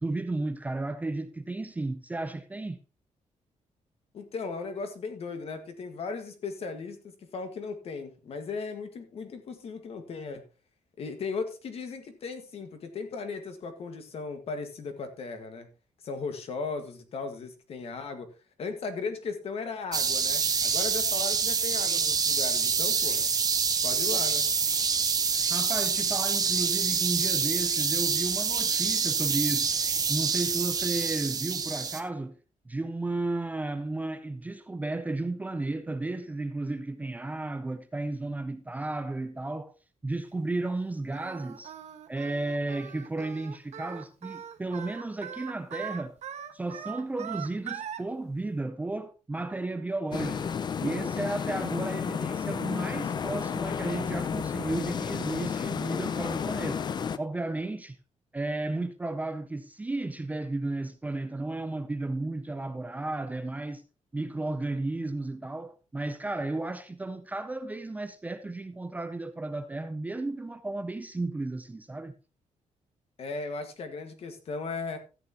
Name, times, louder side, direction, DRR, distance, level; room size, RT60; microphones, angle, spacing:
voice 1, 0.0-2.8 25.5-29.7 30.1-32.4 32.7-39.7 40.0-41.7 42.1-46.2 46.5-50.5 50.8-56.9 57.2-58.0 58.3-63.8 64.1-72.1, right 2 dB, 10° right, 0.5 m, -33 dB
voice 2, 4.1-10.5 11.0-15.7 16.0-18.3 18.6-23.2 23.8-24.5 73.2-75.0, left 4 dB, 50° left, 1.7 m, -37 dB
sound 1, 19.9-32.0, right 5 dB, 30° right, 0.9 m, -26 dB
Singing, 41.1-48.0, right 9 dB, 60° right, 1.2 m, -41 dB
sound 2, 50.1-57.2, left 7 dB, 35° left, 0.5 m, -32 dB
13.5 x 9.2 x 2.9 m
wide cardioid pair, 175°, 13 cm